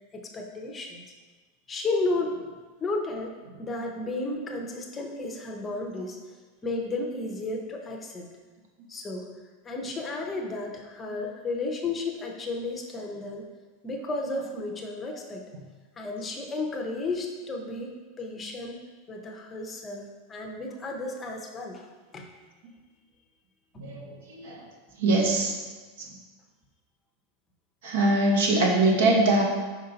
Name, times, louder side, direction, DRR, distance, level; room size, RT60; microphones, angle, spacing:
voice 1, 0.1-1.0 1.7-2.4 2.8-3.3 3.6-6.2 6.6-8.3 8.9-9.3 9.6-13.5 13.8-15.4 16.0-18.8 19.1-21.9 22.1-22.3, left 2 dB, 15° left, 1 dB, 0.7 m, -33 dB
voice 2, 23.8-24.6 25.0-25.5 27.8-29.4, right 2 dB, 70° right, 0 dB, 1.3 m, -22 dB
5.4 x 4.7 x 4.0 m, 1.3 s
supercardioid pair, 170°, 0 cm